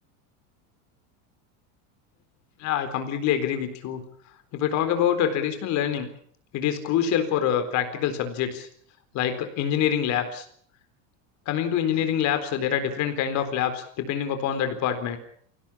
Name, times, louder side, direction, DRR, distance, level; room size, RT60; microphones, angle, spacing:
voice 1, 2.6-4.0 4.5-6.1 6.5-8.7 9.1-10.5 11.5-15.2, left 9 dB, 45° left, 9 dB, 4.0 m, -25 dB
24.5 x 17.5 x 8.6 m, 0.63 s
supercardioid pair, 150°, 39 cm